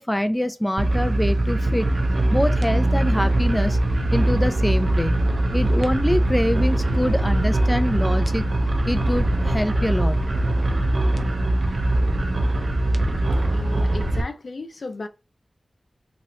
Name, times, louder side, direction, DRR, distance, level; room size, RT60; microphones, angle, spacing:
voice 1, 0.0-1.9 2.3-3.8 4.1-5.2 5.5-8.5 8.9-10.2, equal, 10° left, 0.4 m, -24 dB
sound 1, 0.8-14.2, right 1 dB, 70° right, 0.5 m, -21 dB
voice 2, 13.5-15.1, left 3 dB, 70° left, 0.5 m, -34 dB
3.0 x 2.9 x 2.7 m
wide cardioid pair, 75°, 0 cm